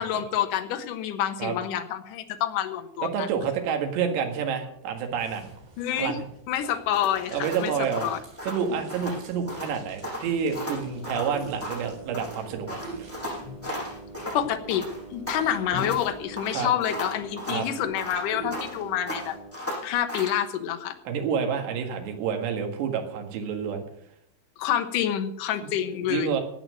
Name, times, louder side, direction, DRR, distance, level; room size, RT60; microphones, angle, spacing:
voice 1, 0.0-3.3 5.8-6.2 6.5-7.7 8.0-8.2 14.3-19.4 19.8-21.0 24.6-26.4, left 10 dB, 75° left, 7 dB, 2.0 m, -28 dB
voice 2, 3.0-5.5 5.9-6.3 7.3-8.1 8.5-12.8 16.5-16.7 17.4-17.7 21.1-23.8 26.1-26.4, right 7 dB, 75° right, 4 dB, 3.8 m, -28 dB
sound 1, 4.7-16.6, left 2 dB, 90° right, 7.0 m, -47 dB
sound 2, 6.9-9.2 9.5-9.8 10.0-11.9 12.1-14.4 14.7-16.1 16.4-18.8 19.1-20.4, left 1 dB, 5° left, 6.9 m, -36 dB
sound 3, 10.8-19.5, right 3 dB, 35° left, 7.9 m, -43 dB
16.0 x 8.9 x 6.4 m, 0.71 s
omnidirectional pair, 5.2 m